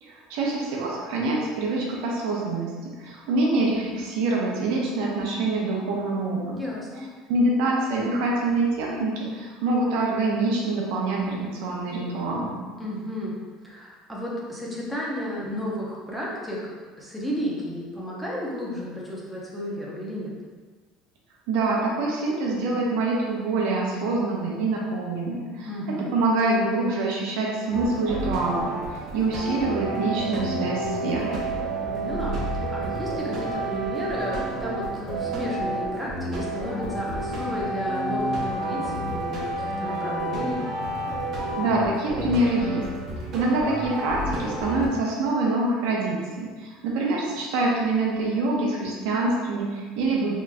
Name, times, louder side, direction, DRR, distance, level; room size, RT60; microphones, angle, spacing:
voice 1, 0.0-6.6 7.3-12.6 21.5-31.5 41.6-42.8 43.3-50.3, right 2 dB, 75° right, -3 dB, 0.7 m, -25 dB
voice 2, 6.5-7.0 12.8-13.4 13.6-16.6 17.0-20.3 25.7-26.1 31.9-40.6, equal, ahead, -6 dB, 0.6 m, -33 dB
sound 1, 27.7-44.9, right 1 dB, 40° right, 0.8 m, -30 dB
3.7 x 3.0 x 2.2 m, 1.4 s
cardioid pair, 145°, 0 cm